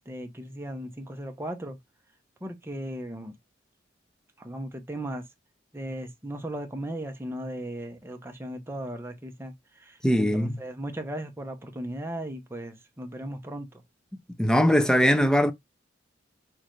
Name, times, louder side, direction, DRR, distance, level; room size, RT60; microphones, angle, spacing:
voice 1, 0.0-1.8 2.4-3.3 4.4-5.2 5.7-13.8, right 1 dB, 15° right, 0.8 m, -37 dB
voice 2, 10.0-10.6 14.4-15.5, equal, 5° left, 0.5 m, -21 dB
6.3 x 2.5 x 3.1 m
head